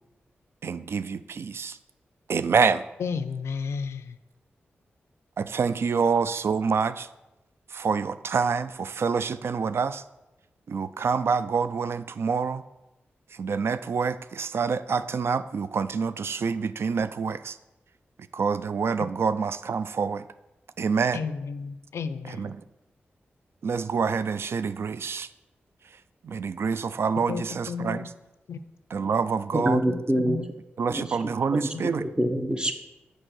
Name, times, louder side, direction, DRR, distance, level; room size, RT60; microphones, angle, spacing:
voice 1, 0.6-1.8 2.3-2.8 5.4-7.1 7.7-10.0 10.7-12.6 13.4-17.5 18.3-20.2 20.8-21.2 22.4-22.5 23.6-25.3 26.3-28.0 28.9-29.8 30.8-32.0, right 5 dB, 70° right, 14 dB, 0.3 m, -26 dB
voice 2, 3.0-4.2 21.1-22.5 27.3-28.1 28.5-28.6 29.9-30.5 31.7-31.8, left 5 dB, 90° left, 12 dB, 0.4 m, -33 dB
voice 3, 29.5-30.4 30.9-31.7 32.0-32.7, right 1 dB, 20° right, 7 dB, 1.0 m, -26 dB
6.4 x 4.8 x 6.1 m, 0.97 s
cardioid pair, 55°, 4 cm